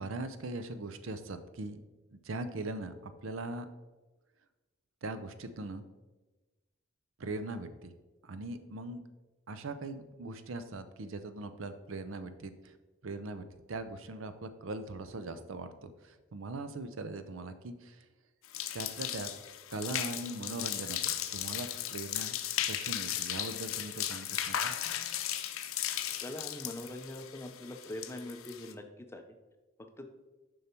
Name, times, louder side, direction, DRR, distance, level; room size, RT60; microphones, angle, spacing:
voice 1, 0.0-1.8 2.1-3.7 5.0-5.8 7.2-7.9 8.2-9.0 9.5-12.7 13.0-18.1 18.7-19.3 19.7-22.4 22.6-24.8, right 2 dB, 75° right, 10 dB, 0.6 m, -40 dB
sound 1, 18.4-28.7, left 11 dB, 85° left, 0.6 m, -36 dB
voice 2, 26.2-28.9 29.1-29.2 29.8-30.1, left 1 dB, 10° left, 5 dB, 0.5 m, -42 dB
6.9 x 5.4 x 4.4 m, 1.2 s
head